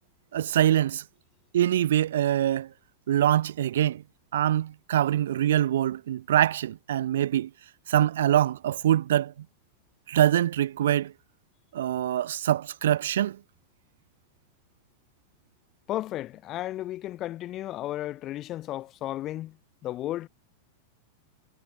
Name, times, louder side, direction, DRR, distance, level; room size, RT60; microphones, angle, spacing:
voice 1, 0.3-1.0 1.5-2.7 3.1-4.0 4.3-7.5 7.9-9.3 10.1-11.1 11.7-13.4, right 11 dB, 85° right, 0.4 m, -24 dB
voice 2, 15.9-19.6 19.8-20.3, left 14 dB, 25° left, 0.8 m, -34 dB
supercardioid pair, 165°, 0 cm